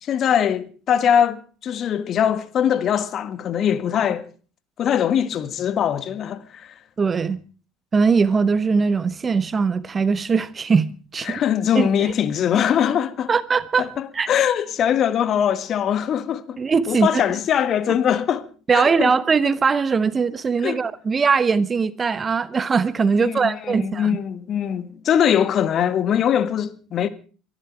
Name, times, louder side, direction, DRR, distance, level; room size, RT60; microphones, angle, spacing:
voice 1, 0.0-4.3 4.8-6.7 11.2-13.3 13.8-18.5 18.7-19.1 20.6-20.8 23.2-27.1, left 9 dB, 45° left, 1.7 m, -22 dB
voice 2, 7.0-7.4 7.9-11.4 11.7-12.1 13.3-13.9 14.1-14.3 16.6-17.2 18.7-24.2, right 5 dB, 25° right, 1.1 m, -20 dB
23.5 x 13.0 x 4.6 m
figure-of-eight pair, 65°, 0 cm